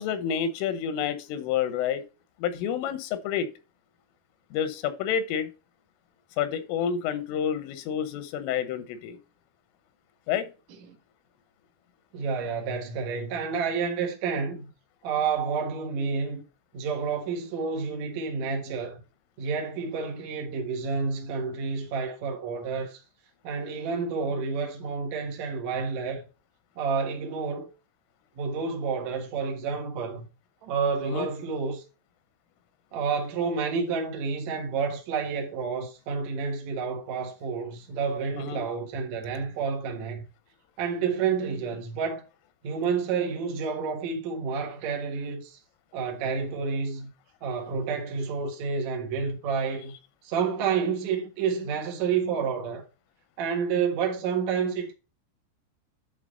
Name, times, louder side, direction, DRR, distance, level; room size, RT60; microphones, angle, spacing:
voice 1, 0.0-2.0 2.4-3.5 4.5-5.5 6.4-9.2 10.3-10.5 31.0-31.3 38.4-38.6, left 8 dB, 90° left, 3.5 m, -29 dB
voice 2, 12.1-14.7 15.0-16.4 16.7-19.0 19.4-23.0 23.4-26.2 26.8-27.7 28.4-30.3 30.6-31.8 32.9-40.2 40.8-42.3 42.6-45.6 45.9-47.1 47.4-49.9 50.2-52.9 53.4-54.9, right 5 dB, 65° right, 1.8 m, -29 dB
10.5 x 3.6 x 5.2 m
omnidirectional pair, 5.5 m